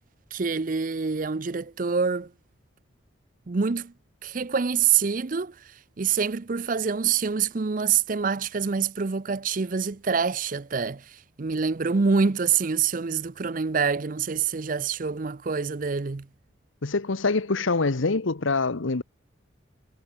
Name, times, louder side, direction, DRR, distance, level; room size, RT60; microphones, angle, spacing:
voice 1, 0.3-2.3 3.5-3.9 4.2-5.5 6.0-11.0 11.4-16.3, right 6 dB, 45° right, 0.5 m, -26 dB
voice 2, 16.8-19.0, left 3 dB, 85° left, 1.0 m, -25 dB
head